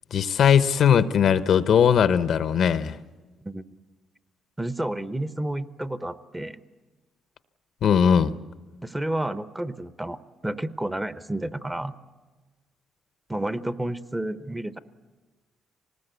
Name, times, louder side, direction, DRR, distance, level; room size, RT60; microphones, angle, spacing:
voice 1, 0.1-3.0 7.8-8.3, left 8 dB, 65° left, 13 dB, 0.8 m, -19 dB
voice 2, 4.6-6.6 8.8-10.2 10.4-11.9 13.3-14.8, right 1 dB, 10° right, 12 dB, 0.9 m, -30 dB
25.0 x 19.5 x 8.2 m, 1.3 s
cardioid pair, 90°, 0 cm